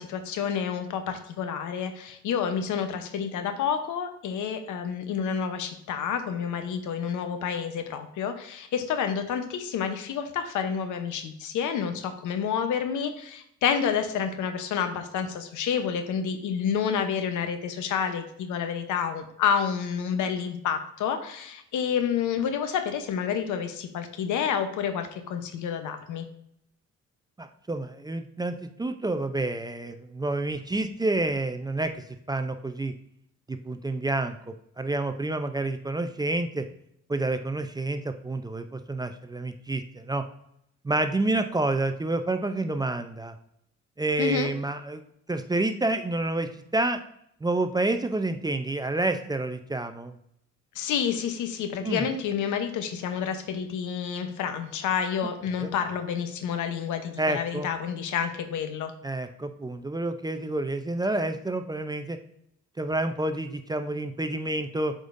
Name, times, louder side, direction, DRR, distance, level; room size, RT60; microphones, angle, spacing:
voice 1, 0.0-26.3 44.2-44.5 50.7-58.9, left 7 dB, 80° left, 8 dB, 0.9 m, -29 dB
voice 2, 27.4-32.9 33.5-36.7 37.1-40.2 40.8-43.3 44.0-45.0 45.3-47.0 47.4-50.2 51.8-52.1 55.6-55.7 57.2-57.7 59.0-62.2 62.8-64.9, right 2 dB, 15° right, 8 dB, 0.5 m, -29 dB
7.8 x 5.1 x 2.5 m, 0.73 s
cardioid pair, 90°, 30 cm